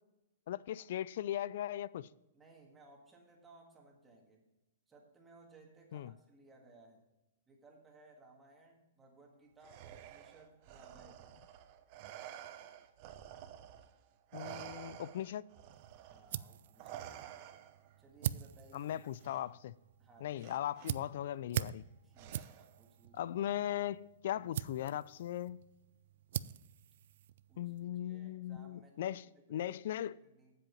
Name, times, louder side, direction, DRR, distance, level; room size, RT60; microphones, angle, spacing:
voice 1, 0.5-2.1 5.9-6.1 14.3-15.4 18.7-19.8 20.2-21.8 23.1-25.6 27.6-30.2, left 11 dB, 60° left, 0.3 m, -38 dB
voice 2, 2.3-4.4 4.9-7.1 7.5-11.3 16.1-17.1 18.0-18.9 20.0-20.7 22.0-23.3 27.5-30.5, right 2 dB, 10° right, 1.7 m, -61 dB
Respiratory sounds, 9.6-14.0 14.3-17.9 19.2-19.4 20.4-20.9 22.2-22.8, right 11 dB, 40° right, 0.7 m, -50 dB
sound 1, 15.7-27.8, right 11 dB, 60° right, 0.3 m, -44 dB
7.8 x 7.7 x 5.2 m
hypercardioid pair, 155°, 0 cm